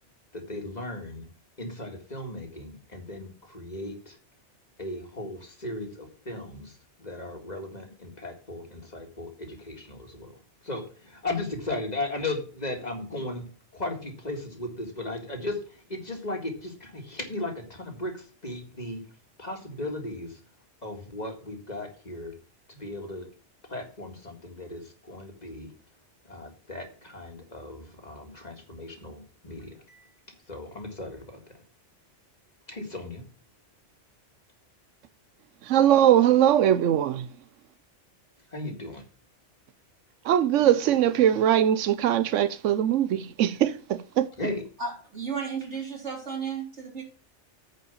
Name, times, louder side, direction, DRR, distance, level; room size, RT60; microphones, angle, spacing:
voice 1, 0.3-1.3 1.6-4.2 4.8-10.3 10.6-13.4 13.7-19.0 19.4-20.4 20.8-22.3 22.7-23.3 23.7-25.7 26.3-30.1 30.5-31.4 32.7-33.2 38.5-39.0 44.4-44.6, left 2 dB, 35° left, 2.1 m, -36 dB
voice 2, 35.6-37.3 40.2-44.3, right 10 dB, 90° right, 1.0 m, -21 dB
voice 3, 44.8-47.0, right 5 dB, 70° right, 4.0 m, -33 dB
9.0 x 5.3 x 6.9 m
omnidirectional pair, 1.2 m